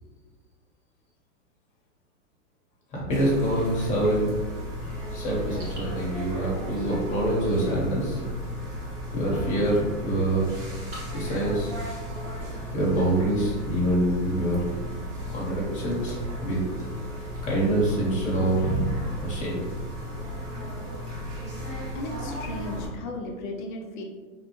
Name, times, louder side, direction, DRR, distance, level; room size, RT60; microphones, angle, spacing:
voice 1, 2.9-4.3 5.1-8.2 9.1-10.7 11.1-11.7 12.7-14.6 15.3-16.6 17.4-19.7, right 1 dB, 20° left, -5 dB, 0.9 m, -25 dB
sound 1, 3.1-22.9, equal, 15° right, 0.3 m, -35 dB
voice 2, 21.9-24.0, left 2 dB, 40° left, 1 dB, 0.5 m, -36 dB
3.4 x 2.1 x 2.9 m, 1.3 s
hypercardioid pair, 145°, 39 cm